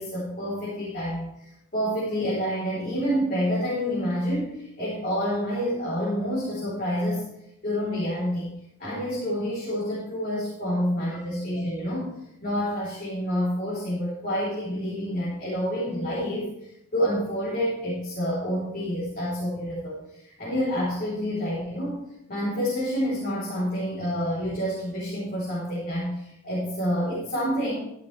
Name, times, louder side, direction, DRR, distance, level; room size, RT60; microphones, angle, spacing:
voice 1, 0.0-7.2 7.6-8.5 8.8-12.1 12.4-22.0 22.3-27.8, equal, 40° left, -8 dB, 3.8 m, -28 dB
13.0 x 11.5 x 3.4 m, 0.83 s
head